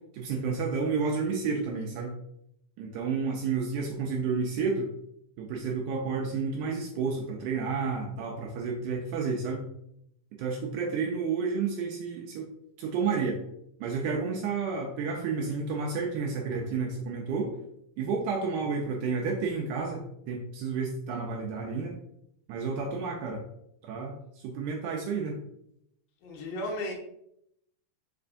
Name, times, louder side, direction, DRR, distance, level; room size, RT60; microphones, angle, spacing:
voice 1, 0.1-2.2 2.8-4.9 5.4-9.6 10.4-12.5 12.8-13.4 13.8-17.5 18.0-20.0 20.3-22.0 22.5-23.4 23.8-25.4, right 5 dB, 85° right, 1 dB, 1.8 m, -31 dB
voice 2, 26.2-26.9, left 1 dB, 75° left, -3 dB, 2.8 m, -34 dB
5.8 x 3.3 x 2.5 m, 0.75 s
omnidirectional pair, 4.1 m